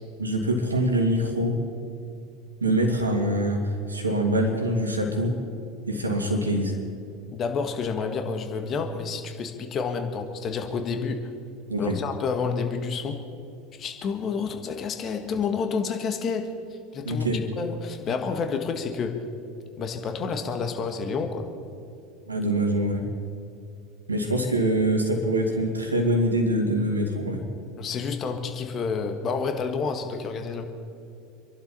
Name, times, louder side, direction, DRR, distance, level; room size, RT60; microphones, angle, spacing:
voice 1, 0.2-1.5 2.6-5.3 5.9-6.7 11.7-12.0 17.0-17.4 22.3-23.0 24.1-27.4, right 1 dB, 90° right, 3 dB, 2.3 m, -24 dB
voice 2, 7.3-11.3 11.8-13.2 13.8-19.2 19.8-21.5 27.8-30.6, left 5 dB, 40° left, 5 dB, 1.9 m, -29 dB
27.0 x 11.5 x 4.3 m, 2.6 s
figure-of-eight pair, 80°, 0 cm